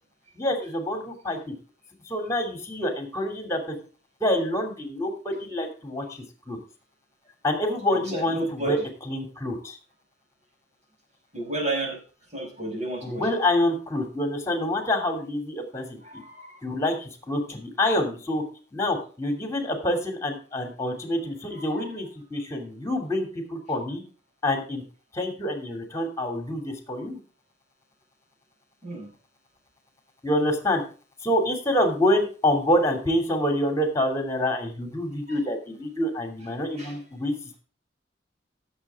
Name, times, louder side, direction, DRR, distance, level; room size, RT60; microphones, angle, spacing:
voice 1, 0.4-1.5 2.1-3.8 4.2-6.6 7.4-8.8 9.0-9.8 13.0-16.2 16.6-18.4 18.7-24.0 24.4-24.8 25.1-27.2 30.2-30.8 31.2-37.3, left 1 dB, 15° left, 5 dB, 2.8 m, -27 dB
voice 2, 7.9-8.8 11.3-12.0 12.3-13.3 16.0-16.7 21.6-21.8 28.8-29.1 35.3-35.4 36.8-37.0, right 1 dB, 40° right, 0 dB, 5.4 m, -32 dB
16.0 x 7.3 x 3.6 m, 0.38 s
head